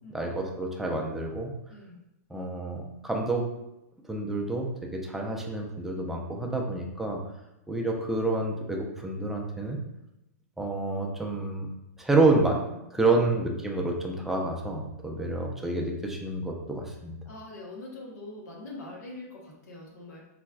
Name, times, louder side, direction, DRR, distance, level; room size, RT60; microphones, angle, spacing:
voice 1, 0.1-1.5 2.3-3.4 4.1-7.2 7.7-9.8 10.6-11.7 12.0-12.6 12.9-17.2, right 2 dB, 5° right, 0 dB, 0.4 m, -28 dB
voice 2, 1.7-2.0 17.3-20.2, left 2 dB, 80° left, -2 dB, 1.0 m, -43 dB
4.0 x 2.2 x 2.3 m, 0.87 s
hypercardioid pair, 140°, 9 cm